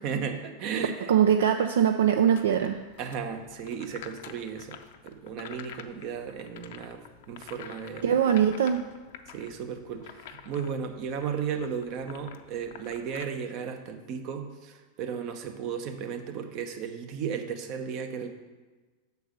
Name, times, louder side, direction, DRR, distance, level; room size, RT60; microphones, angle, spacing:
voice 1, 0.0-1.1 3.0-4.8 5.0-7.0 7.3-8.1 9.3-18.3, right 7 dB, 50° right, 5 dB, 1.0 m, -35 dB
voice 2, 1.0-2.8 8.0-8.8, right 9 dB, 75° right, 7 dB, 0.4 m, -22 dB
sound 1, 2.3-13.2, left 9 dB, 65° left, 0.5 m, -49 dB
6.6 x 4.6 x 6.6 m, 1.3 s
hypercardioid pair, 100°, 0 cm